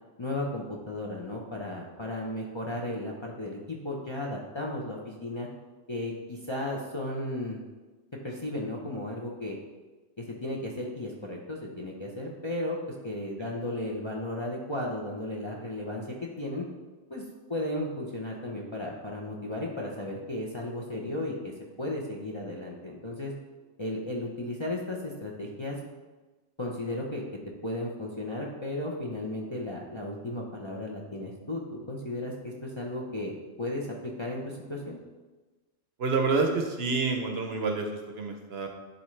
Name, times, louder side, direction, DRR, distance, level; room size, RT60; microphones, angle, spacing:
voice 1, 0.2-5.5 5.9-7.6 8.2-9.6 10.2-12.8 13.0-16.1 16.4-16.6 17.1-17.2 17.5-21.5 21.8-23.3 23.8-25.8 26.6-27.2 27.6-33.3 33.6-35.0, left 1 dB, 30° left, -3 dB, 0.6 m, -34 dB
voice 2, 36.0-38.7, right 4 dB, 60° right, 4 dB, 0.9 m, -28 dB
11.0 x 3.8 x 3.2 m, 1.2 s
omnidirectional pair, 1.3 m